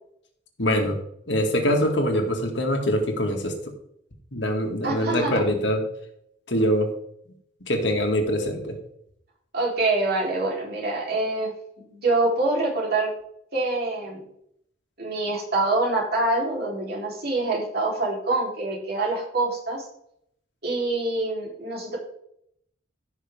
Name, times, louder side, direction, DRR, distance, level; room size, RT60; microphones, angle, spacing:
voice 1, 0.6-1.0 1.3-3.5 4.3-5.8 6.5-6.9 7.7-8.8, equal, 70° left, 2 dB, 2.3 m, -23 dB
voice 2, 4.8-5.4 9.5-11.5 11.8-13.1 13.5-14.2 15.0-19.9 20.6-22.0, right 2 dB, 55° right, -3 dB, 3.9 m, -25 dB
15.0 x 6.5 x 3.7 m, 0.72 s
head